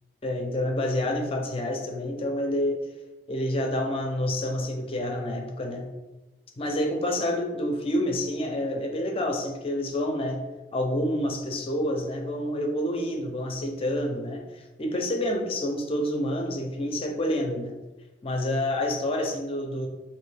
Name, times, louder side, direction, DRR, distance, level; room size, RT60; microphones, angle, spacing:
voice 1, 0.2-2.8 3.3-5.9 6.6-10.5 10.7-17.8 18.2-19.9, left 1 dB, 35° left, 2 dB, 0.5 m, -28 dB
3.0 x 2.6 x 3.3 m, 1.1 s
head